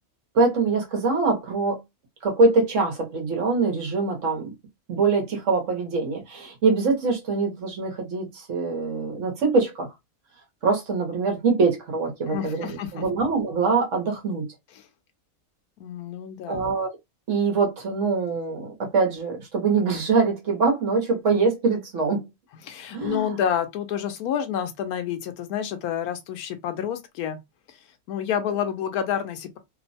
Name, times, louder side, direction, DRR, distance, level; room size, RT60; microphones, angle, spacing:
voice 1, 0.3-1.8 2.2-4.5 4.9-9.9 10.6-14.5 16.5-16.9 17.3-22.3 22.9-23.3, right 4 dB, 60° right, 1.2 m, -23 dB
voice 2, 12.3-13.1 15.8-16.6 22.6-27.4 27.7-27.8 28.1-29.6, left 9 dB, 85° left, 1.1 m, -29 dB
3.0 x 2.1 x 2.6 m
omnidirectional pair, 1.5 m